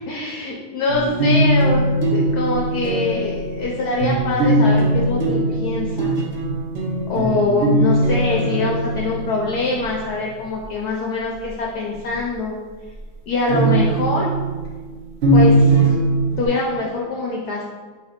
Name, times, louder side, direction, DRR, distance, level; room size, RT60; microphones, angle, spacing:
voice 1, 0.1-6.2 7.1-12.6 13.3-14.3 15.3-15.9 16.4-17.6, left 3 dB, 70° left, -2 dB, 1.0 m, -24 dB
sound 1, 0.9-10.0 13.5-16.5, right 1 dB, 65° right, 0.6 m, -19 dB
4.6 x 3.2 x 3.5 m, 1.4 s
omnidirectional pair, 2.1 m